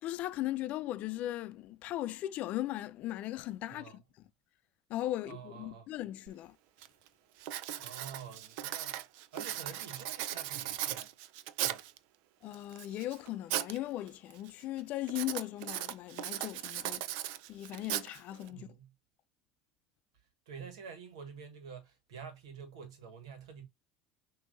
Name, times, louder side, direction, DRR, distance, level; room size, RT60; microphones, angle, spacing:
voice 1, 0.0-4.0 4.9-6.6 12.4-17.0 17.5-18.7, left 14 dB, 55° left, 0.5 m, -38 dB
voice 2, 3.6-4.0 5.2-5.9 7.8-9.0 9.3-11.1 11.6-11.8 18.5-18.9 20.5-23.7, right 6 dB, 90° right, 1.5 m, -48 dB
Writing, 6.3-6.4 6.8-7.1 7.4-12.0 12.5-13.8 14.1-14.5 15.1-18.5, right 13 dB, 70° right, 0.5 m, -38 dB
6.2 x 2.8 x 2.7 m
supercardioid pair, 100°, 3 cm